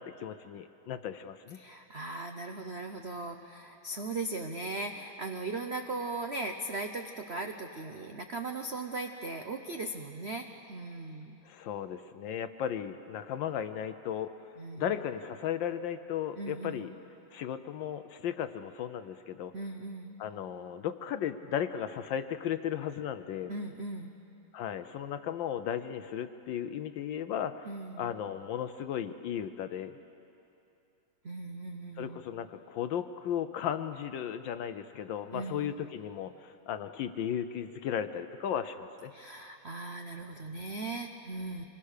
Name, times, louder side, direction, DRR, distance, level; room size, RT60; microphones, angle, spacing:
voice 1, 0.0-1.6 11.5-16.9 17.3-19.5 20.2-23.5 24.5-27.7 28.0-30.0 32.0-39.1, left 9 dB, 70° left, 11 dB, 1.2 m, -35 dB
voice 2, 1.5-11.4 14.6-15.0 16.4-16.9 19.5-20.1 23.5-24.1 27.7-28.1 31.2-32.2 35.3-35.7 39.1-41.6, right 2 dB, 65° right, 5 dB, 0.6 m, -38 dB
25.5 x 21.0 x 6.6 m, 2.8 s
omnidirectional pair, 2.4 m